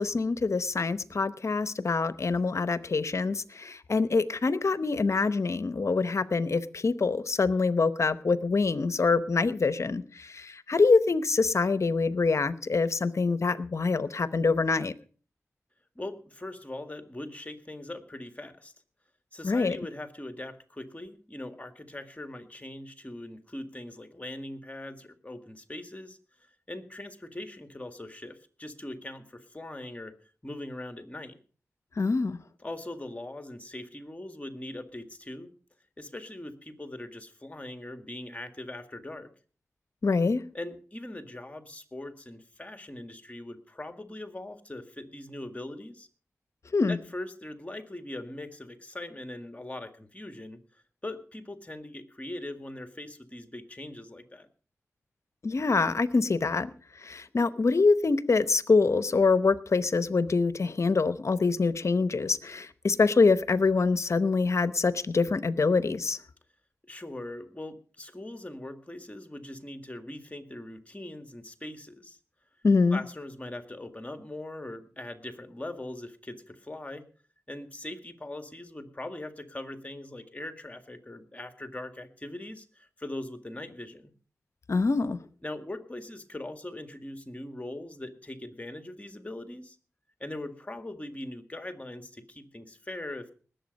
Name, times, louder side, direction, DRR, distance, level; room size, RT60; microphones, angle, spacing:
voice 1, 0.0-14.9 19.4-19.8 32.0-32.4 40.0-40.4 46.7-47.0 55.4-56.7 57.0-66.2 72.6-73.0 84.7-85.2, left 4 dB, 60° left, 14 dB, 0.8 m, -25 dB
voice 2, 16.0-18.7 19.3-26.2 26.7-30.1 30.4-31.4 32.6-35.5 36.0-39.3 40.5-46.1 46.9-50.6 51.0-54.5 66.9-72.2 72.9-77.1 77.5-84.1 85.4-89.8 90.2-93.3, left 1 dB, 25° left, 8 dB, 1.8 m, -41 dB
19.5 x 7.9 x 5.2 m, 0.41 s
cardioid pair, 55°, 6 cm